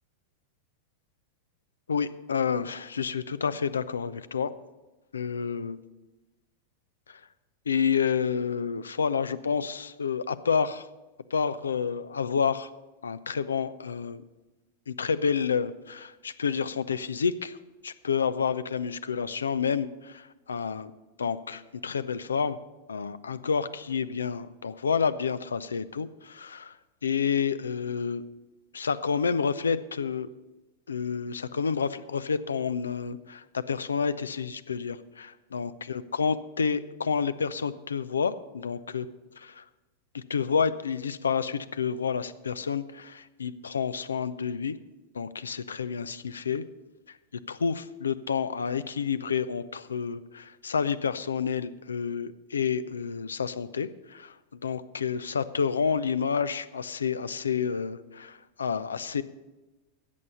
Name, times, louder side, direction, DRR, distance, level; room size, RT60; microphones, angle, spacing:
voice 1, 1.9-4.5 5.1-5.8 7.1-7.2 7.7-10.9 11.3-12.7 13.0-14.2 14.9-17.6 17.8-20.9 21.2-22.6 22.9-26.8 27.0-28.2 28.7-30.3 30.9-39.1 39.4-39.6 40.1-44.7 45.1-46.6 47.1-47.2 47.5-59.2, left 6 dB, 70° left, 15 dB, 0.5 m, -29 dB
13.5 x 8.3 x 5.5 m, 1.1 s
figure-of-eight pair, 90°, 0 cm